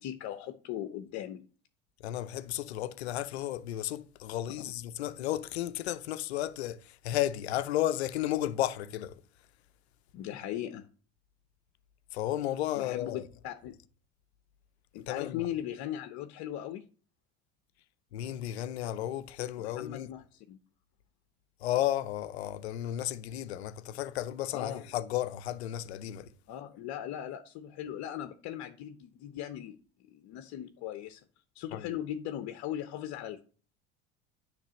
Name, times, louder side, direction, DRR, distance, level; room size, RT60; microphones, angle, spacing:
voice 1, 0.0-1.5 10.1-10.9 12.8-13.8 14.9-16.9 19.6-20.6 24.5-24.8 26.5-29.8 30.1-31.2 31.5-33.4, left 11 dB, 60° left, 0.9 m, -39 dB
voice 2, 2.0-9.2 12.1-13.3 15.1-15.5 18.1-20.1 21.6-26.3 31.7-31.9, left 13 dB, 85° left, 0.6 m, -33 dB
10.0 x 3.4 x 6.3 m
hypercardioid pair, 75°, 31 cm